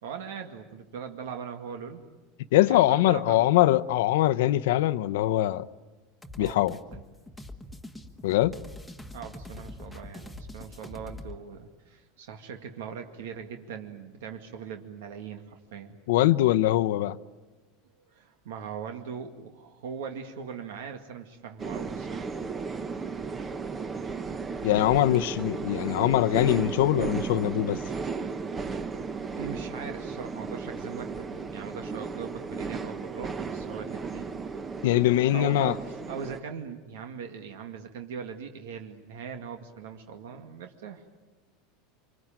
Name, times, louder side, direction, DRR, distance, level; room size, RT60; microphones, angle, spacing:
voice 1, 0.0-2.0 2.6-3.6 6.4-7.0 9.1-16.0 18.1-22.3 25.3-25.5 29.4-34.3 35.3-41.0, right 7 dB, 85° right, 5 dB, 2.1 m, -40 dB
voice 2, 2.5-5.6 6.4-6.8 8.2-8.5 16.1-17.2 24.6-27.8 34.8-35.7, left 14 dB, 75° left, 15 dB, 0.8 m, -22 dB
sound 1, 6.2-11.4, left 1 dB, ahead, 1.3 m, -43 dB
sound 2, 21.6-36.4, right 4 dB, 15° right, 0.9 m, -35 dB
26.0 x 25.0 x 9.0 m, 1.2 s
supercardioid pair, 160°, 0 cm